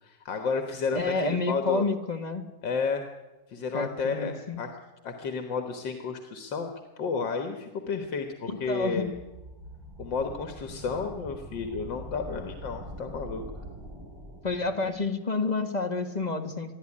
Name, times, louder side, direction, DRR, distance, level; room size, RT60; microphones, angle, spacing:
voice 1, 0.0-1.8 2.6-3.0 3.5-4.7 5.0-6.7 7.0-9.1 10.0-13.4, left 5 dB, 80° left, 6 dB, 2.2 m, -31 dB
voice 2, 0.9-2.5 3.7-4.6 8.7-9.1 14.4-16.7, left 3 dB, 25° left, 5 dB, 1.8 m, -29 dB
sound 1, 8.6-15.1, equal, 10° right, 3.4 m, -43 dB
23.5 x 14.5 x 10.0 m, 1.1 s
omnidirectional pair, 2.0 m